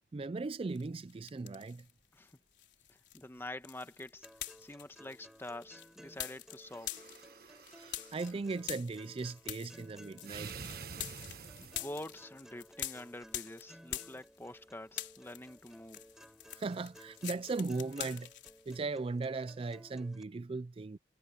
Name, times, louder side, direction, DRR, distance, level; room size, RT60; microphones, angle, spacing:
voice 1, 0.1-1.8 7.7-10.6 16.6-18.3 18.7-21.0, right 3 dB, 30° right, 0.3 m, -38 dB
sound 1, 0.8-1.9 2.2-14.6 14.9-18.8, left 12 dB, 70° left, 4.5 m, -45 dB
voice 2, 2.9-4.3 4.6-6.9 11.6-16.1, left 1 dB, 15° left, 1.2 m, -46 dB
sound 2, 4.2-20.2, equal, 5° right, 6.5 m, -58 dB
sound 3, 6.6-8.4 10.2-12.2, right 5 dB, 55° right, 1.3 m, -48 dB
head